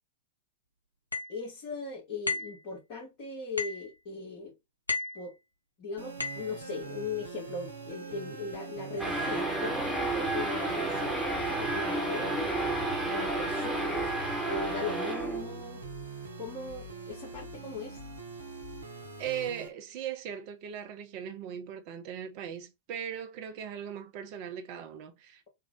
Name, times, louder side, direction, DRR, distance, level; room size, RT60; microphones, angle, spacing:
sound 1, 1.1-1.4 2.3-2.6 3.6-3.9 4.9-5.2 6.2-6.5, left 3 dB, 85° left, 0.6 m, -33 dB
voice 1, 1.3-4.5 5.1-5.3 5.8-12.7 13.1-14.1 14.4-15.8 16.4-18.0, left 3 dB, 45° left, 1.8 m, -39 dB
sound 2, 6.0-19.7, right 3 dB, 75° right, 0.8 m, -44 dB
sound 3, 9.0-15.6, right 2 dB, 10° right, 1.3 m, -31 dB
voice 2, 19.2-25.5, right 9 dB, 45° right, 0.7 m, -39 dB
3.7 x 2.4 x 3.5 m
figure-of-eight pair, 90°, 0 cm